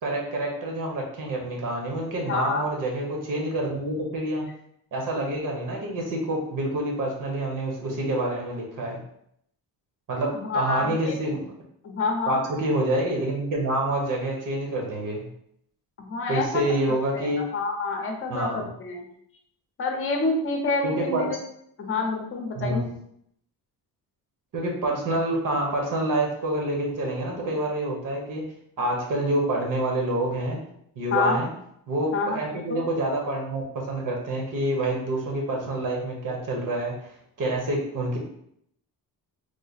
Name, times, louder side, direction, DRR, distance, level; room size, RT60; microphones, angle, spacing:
voice 1, 0.0-4.5 4.9-9.0 10.1-11.5 12.3-15.3 16.3-17.4 18.3-18.7 20.8-21.3 22.5-22.8 24.5-28.4 28.8-30.6 31.0-31.5 31.9-37.1 37.4-38.2, right 1 dB, 55° right, 0 dB, 0.9 m, -27 dB
voice 2, 2.3-2.7 10.3-11.1 11.8-12.4 16.0-16.6 17.1-19.0 19.8-21.4 21.8-22.9 31.1-31.4 32.1-32.8, left 3 dB, 35° left, 2 dB, 0.7 m, -27 dB
3.2 x 2.0 x 4.0 m, 0.71 s
cardioid pair, 145°, 38 cm